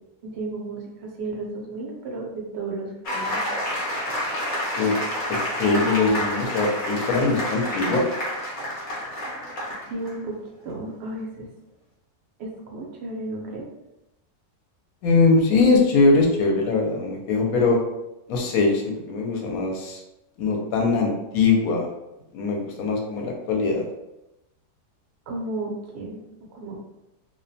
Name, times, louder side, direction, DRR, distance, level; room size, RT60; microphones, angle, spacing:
voice 1, 0.2-3.4 9.9-10.4 10.6-11.5 12.4-13.7 25.3-26.2 26.5-26.8, right 2 dB, 65° right, -1 dB, 0.6 m, -33 dB
sound 1, 3.0-10.1, left 1 dB, 55° left, 0.5 m, -29 dB
voice 2, 5.3-8.0 15.0-17.8 18.3-20.0 20.4-21.9 22.3-23.9, left 3 dB, 70° left, 0 dB, 1.0 m, -21 dB
2.5 x 2.2 x 2.6 m, 0.92 s
omnidirectional pair, 1.7 m